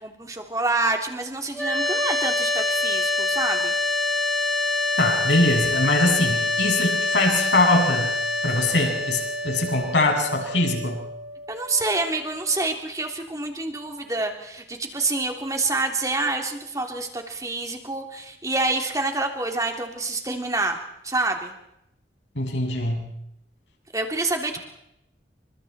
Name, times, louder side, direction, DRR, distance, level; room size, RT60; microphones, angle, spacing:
voice 1, 0.0-3.7 11.5-20.8 21.0-21.5 23.9-24.6, right 2 dB, 20° right, 3 dB, 3.2 m, -27 dB
sound 1, 1.5-12.6, left 2 dB, ahead, 4.3 m, -26 dB
voice 2, 5.0-8.1 8.4-11.0 22.4-23.1, left 2 dB, 80° left, 2 dB, 7.1 m, -22 dB
29.0 x 25.5 x 4.4 m, 0.84 s
head